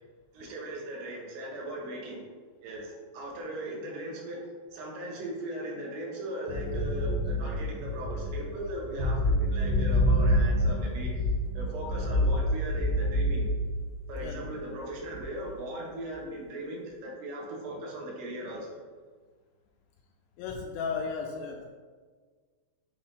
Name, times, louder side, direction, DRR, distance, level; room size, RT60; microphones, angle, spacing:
voice 1, 0.3-2.3 2.6-11.3 11.5-13.5 14.1-18.8, right 1 dB, 70° right, -2 dB, 3.0 m, -38 dB
sound 1, 6.5-14.5 15.1-15.4, equal, 85° right, 1.7 m, -27 dB
voice 2, 20.4-21.6, left 5 dB, 85° left, 2 dB, 2.4 m, -34 dB
8.4 x 2.8 x 5.2 m, 1.5 s
omnidirectional pair, 5.1 m